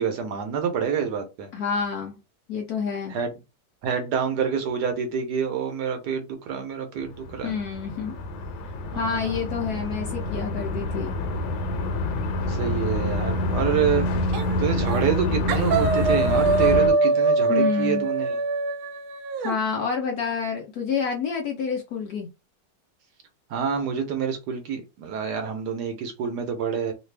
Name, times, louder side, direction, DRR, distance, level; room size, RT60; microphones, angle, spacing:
voice 1, 0.0-1.5 3.1-3.3 3.8-7.6 8.9-9.4 12.5-14.1 14.6-18.4 23.5-26.9, right 7 dB, 70° right, 1.1 m, -27 dB
voice 2, 1.5-2.2 2.5-3.2 7.4-8.1 8.9-11.2 17.5-18.1 19.4-22.3, left 6 dB, 70° left, 0.9 m, -28 dB
sound 1, 7.1-16.9, left 1 dB, 85° left, 1.4 m, -27 dB
sound 2, 14.3-14.6 14.9-15.2 15.5-19.6, right 3 dB, 90° right, 1.4 m, -23 dB
3.2 x 2.3 x 3.2 m
omnidirectional pair, 2.1 m